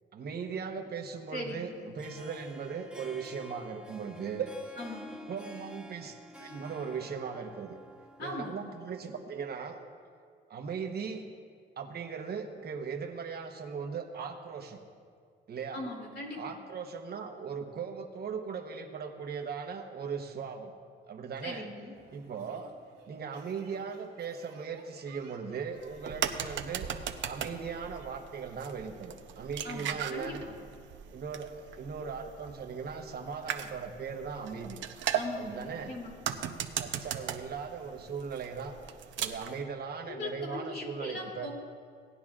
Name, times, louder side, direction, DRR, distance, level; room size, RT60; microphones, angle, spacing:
voice 1, 0.1-4.5 5.3-7.8 8.2-9.8 10.5-11.2 11.8-14.8 15.5-15.8 16.4-20.7 21.1-21.7 22.1-22.7 23.1-26.9 27.2-30.4 31.1-34.8 35.4-36.0 36.8-38.7 39.2-41.5, right 6 dB, 55° right, 4 dB, 1.1 m, -38 dB
voice 2, 1.3-1.7 4.8-5.1 8.2-8.6 15.7-16.5 21.4-21.9 29.6-30.5 35.1-36.1 40.1-41.5, left 2 dB, 60° left, -2 dB, 3.0 m, -40 dB
Harp, 1.8-9.1, equal, 5° right, 0.9 m, -50 dB
sound 1, 21.9-28.1, right 5 dB, 90° right, 2.0 m, -55 dB
sound 2, 25.8-39.6, right 9 dB, 70° right, 0.7 m, -38 dB
18.0 x 10.0 x 2.5 m, 2.2 s
cardioid pair, 90°, 20 cm